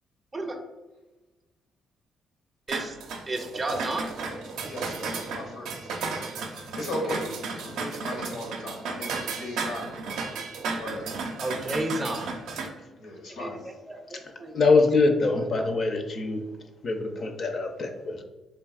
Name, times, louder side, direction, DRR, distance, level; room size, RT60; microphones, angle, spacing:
sound 1, 2.7-12.7, right 4 dB, 85° right, 0.4 m, -34 dB
voice 1, 3.3-4.1 11.4-12.4 13.4-14.5, right 2 dB, 25° right, 3 dB, 0.4 m, -32 dB
voice 2, 4.6-5.9 6.5-10.2 10.8-11.1 13.0-13.6, left 1 dB, 80° left, 1 dB, 0.8 m, -37 dB
voice 3, 14.5-16.4 16.8-18.2, left 3 dB, 50° left, 5 dB, 0.4 m, -24 dB
3.4 x 2.7 x 2.3 m, 1.1 s
cardioid pair, 90°, 0 cm